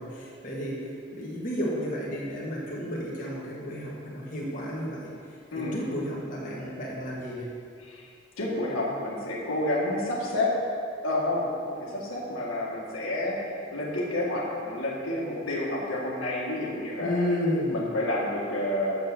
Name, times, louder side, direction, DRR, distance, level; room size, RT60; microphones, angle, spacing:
voice 1, 0.0-5.1 5.6-7.5 17.0-17.9, equal, 40° left, -6 dB, 2.0 m, -32 dB
voice 2, 5.5-5.8 7.8-8.1 8.4-10.5 11.0-13.4 13.7-17.2 17.7-19.0, left 1 dB, 85° left, -4 dB, 2.0 m, -29 dB
7.8 x 7.7 x 6.2 m, 2.2 s
head